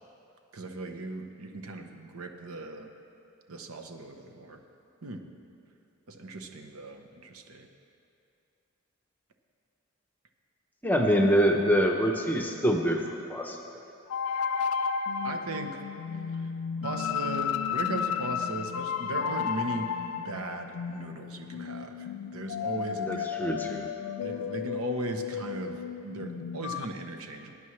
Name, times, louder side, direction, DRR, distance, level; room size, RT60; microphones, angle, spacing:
voice 1, 0.5-2.9 3.5-4.6 5.0-5.2 6.1-7.7 15.2-15.8 16.8-23.3 24.2-27.6, right 2 dB, 90° right, 4 dB, 0.9 m, -38 dB
voice 2, 10.8-13.0 13.3-13.6 23.1-23.9, equal, 10° left, 2 dB, 0.7 m, -25 dB
sound 1, 14.1-26.8, left 7 dB, 85° left, 0.4 m, -33 dB
20.0 x 9.9 x 3.2 m, 2.7 s
head